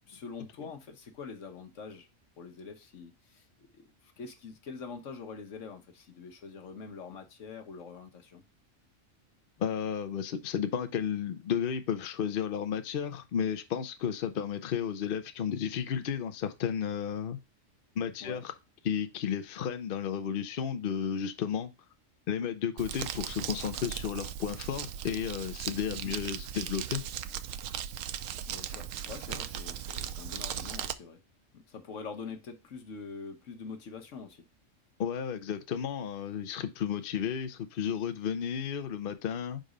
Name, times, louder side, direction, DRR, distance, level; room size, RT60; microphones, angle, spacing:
voice 1, 0.1-2.1 2.4-3.7 4.0-8.4 18.2-18.4 25.9-26.1 28.4-31.2 31.5-34.5, left 5 dB, 70° left, 1.3 m, -44 dB
voice 2, 9.6-17.4 18.0-18.5 18.8-21.7 22.3-27.0 35.0-39.6, left 8 dB, 55° left, 0.7 m, -33 dB
Crumpling crinkling, 22.8-30.9, right 10 dB, 80° right, 1.0 m, -38 dB
5.3 x 4.0 x 4.9 m
omnidirectional pair, 1.3 m